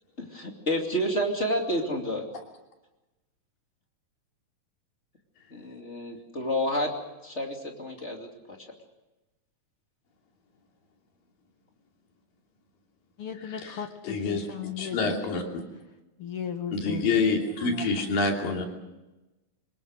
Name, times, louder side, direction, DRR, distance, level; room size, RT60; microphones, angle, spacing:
voice 1, 0.2-2.2 5.5-6.9 7.2-8.6, equal, 20° left, 2 dB, 2.5 m, -29 dB
voice 2, 13.2-15.1 16.2-17.1, left 8 dB, 55° left, 6 dB, 1.8 m, -36 dB
voice 3, 14.1-14.4 14.8-15.6 16.7-18.7, left 3 dB, 85° left, 2 dB, 4.7 m, -26 dB
24.0 x 20.5 x 6.6 m, 1.0 s
omnidirectional pair, 3.9 m